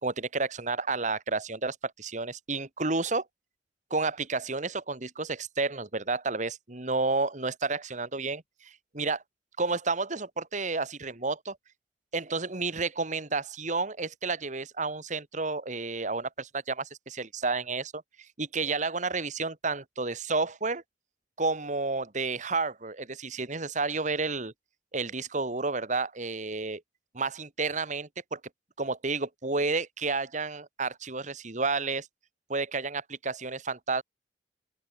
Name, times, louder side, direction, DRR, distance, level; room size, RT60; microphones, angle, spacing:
voice 1, 0.0-3.2 3.9-9.2 9.6-11.6 12.1-18.0 18.4-20.8 21.4-24.5 24.9-26.8 27.1-28.4 28.8-32.1 32.5-34.0, right 3 dB, 45° right, 1.9 m, -31 dB
open air
head